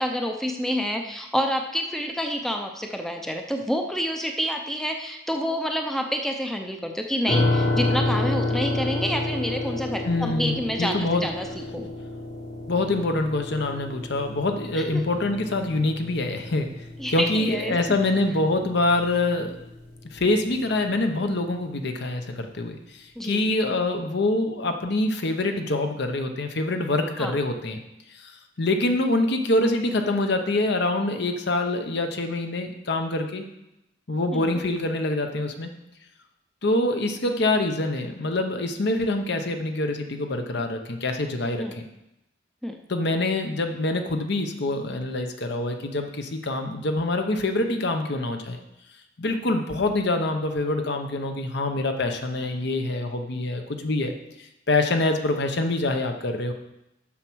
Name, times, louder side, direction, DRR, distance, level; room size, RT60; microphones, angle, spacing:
voice 1, 0.0-11.5 11.7-11.9 14.7-15.0 17.0-17.8 23.2-23.5 27.2-27.3 34.3-34.6 41.6-41.8 42.6-42.8, equal, ahead, 3 dB, 0.6 m, -28 dB
sound 1, 7.3-20.1, left 2 dB, 80° left, 2.9 m, -30 dB
voice 2, 10.0-11.3 12.7-16.7 17.1-19.6 20.1-27.8 28.1-33.4 34.1-35.7 36.6-41.8 42.9-48.6 49.2-56.5, left 2 dB, 60° left, 5 dB, 0.9 m, -25 dB
7.5 x 5.9 x 6.2 m, 0.88 s
head